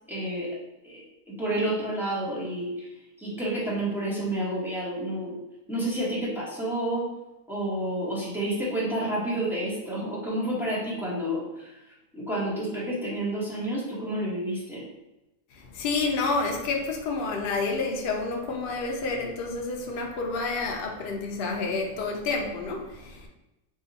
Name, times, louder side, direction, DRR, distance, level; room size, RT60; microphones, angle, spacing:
voice 1, 0.1-0.5 0.8-1.0 1.3-2.9 3.2-5.4 5.7-7.1 7.5-11.8 12.1-14.8, right 1 dB, ahead, -8 dB, 0.8 m, -29 dB
voice 2, 15.5-23.3, left 3 dB, 70° left, 1 dB, 0.5 m, -29 dB
2.8 x 2.4 x 3.9 m, 0.95 s
omnidirectional pair, 1.5 m